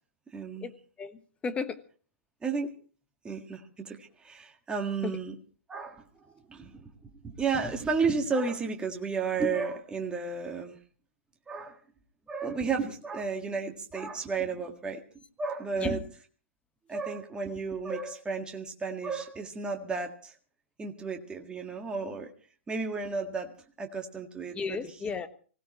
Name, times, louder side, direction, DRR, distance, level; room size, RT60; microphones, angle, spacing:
voice 1, 0.3-0.7 2.4-2.7 3.2-5.4 5.7-6.9 7.2-10.8 11.5-11.8 12.3-15.0 15.4-16.0 16.9-20.3 20.8-22.3 22.7-23.5 23.8-24.8, right 4 dB, 10° right, 3 dB, 1.7 m, -32 dB
voice 2, 1.0-1.8 5.0-5.2 15.8-15.9 24.5-25.3, left 5 dB, 15° left, 10 dB, 1.3 m, -34 dB
25.0 x 16.5 x 3.0 m, 0.40 s
hypercardioid pair, 130°, 8 cm